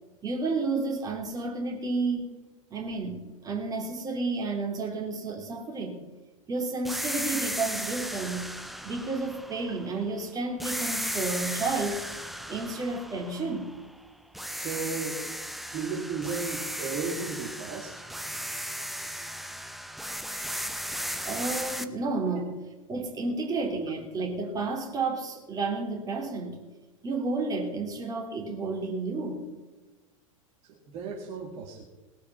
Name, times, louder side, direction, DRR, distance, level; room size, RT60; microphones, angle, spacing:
voice 1, 0.2-2.3 2.7-6.0 6.5-8.5 8.8-12.0 12.5-13.7 21.2-22.6 22.9-26.6 27.0-29.5, right 3 dB, 20° right, 1 dB, 3.1 m, -31 dB
sound 1, 6.8-10.1 10.6-14.0 14.3-21.8, equal, ahead, 0.7 m, -35 dB
voice 2, 14.5-15.2 15.7-18.0 30.6-31.8, right 5 dB, 40° right, 0 dB, 2.2 m, -35 dB
19.0 x 8.3 x 5.8 m, 1.2 s
figure-of-eight pair, 90°, 17 cm